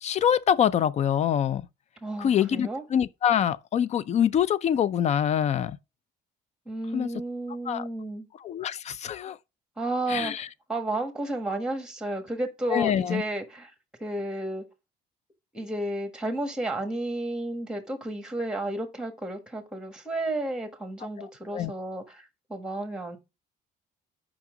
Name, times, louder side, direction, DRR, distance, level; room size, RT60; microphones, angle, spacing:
voice 1, 0.0-1.7 2.2-5.8 6.9-7.1 7.7-7.9 8.4-9.4 10.1-10.5 12.7-13.2 21.2-21.3 21.5-21.7, left 9 dB, 40° left, 0.4 m, -25 dB
voice 2, 2.0-2.8 6.6-8.3 9.8-10.3 10.7-13.7 14.0-14.6 15.5-23.2, right 1 dB, 5° right, 1.6 m, -32 dB
5.7 x 5.3 x 3.8 m
cardioid pair, 110°, 17 cm